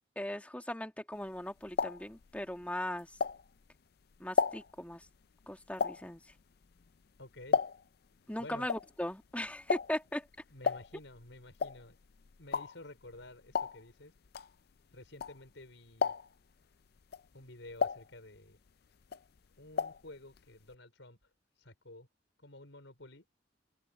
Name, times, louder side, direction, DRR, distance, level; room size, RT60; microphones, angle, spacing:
voice 1, 0.2-3.1 4.2-5.1 5.5-6.2 8.3-10.3, left 1 dB, 10° left, 2.2 m, -38 dB
sound 1, 1.2-3.8 4.1-8.1 8.3-15.6 15.9-16.5 17.0-18.7 19.0-20.1 20.3-20.4 20.7-20.8, left 5 dB, 55° left, 0.5 m, -35 dB
voice 2, 7.2-7.6 8.4-8.7 10.5-12.0 12.4-14.2 14.9-16.1 17.3-18.6 19.6-21.3 21.6-22.1 22.4-23.3, left 2 dB, 85° left, 5.3 m, -51 dB
head